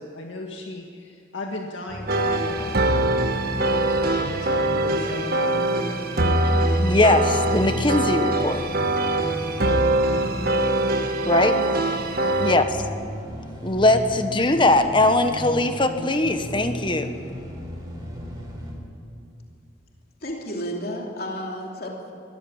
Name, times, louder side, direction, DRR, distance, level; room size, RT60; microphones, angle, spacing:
voice 1, 0.0-5.7 6.2-6.8, left 1 dB, 85° left, 1 dB, 1.9 m, -37 dB
sound 1, 1.9-18.7, equal, 20° right, 5.1 m, -35 dB
sound 2, 2.1-12.6, right 1 dB, 50° right, 1.4 m, -23 dB
voice 2, 6.8-8.6 11.3-11.6 12.4-12.8 13.6-17.1, left 2 dB, 25° left, 8 dB, 1.2 m, -20 dB
voice 3, 20.2-22.1, equal, 50° left, -1 dB, 2.9 m, -32 dB
22.0 x 14.5 x 8.8 m, 2.6 s
head